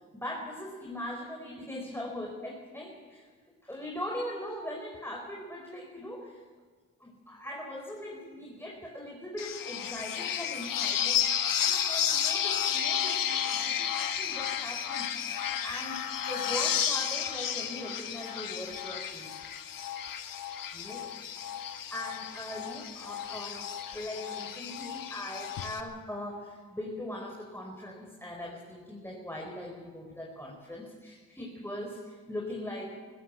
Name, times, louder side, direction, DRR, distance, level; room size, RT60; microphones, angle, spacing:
voice 1, 0.1-3.3 3.6-6.4 7.0-11.3 11.6-16.0 16.3-19.4 20.7-21.0 21.9-32.9, left 1 dB, 5° left, -1 dB, 4.5 m, -40 dB
sound 1, 9.4-25.8, left 9 dB, 70° left, 1.6 m, -32 dB
21.0 x 16.0 x 7.8 m, 1.5 s
supercardioid pair, 55°, 35 cm